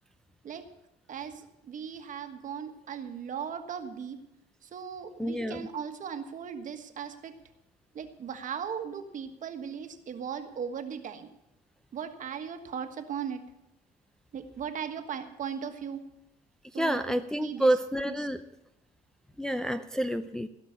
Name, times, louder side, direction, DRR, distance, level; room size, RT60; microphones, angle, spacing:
voice 1, 1.1-4.2 4.6-7.3 7.9-11.3 11.9-13.4 14.3-16.0 16.7-17.7 18.1-18.2, right 7 dB, 50° right, 7 dB, 1.5 m, -38 dB
voice 2, 5.2-5.7 16.7-18.4 19.4-20.5, right 1 dB, 5° left, 7 dB, 0.5 m, -28 dB
16.5 x 6.0 x 8.3 m, 0.89 s
cardioid pair, 110°, 17 cm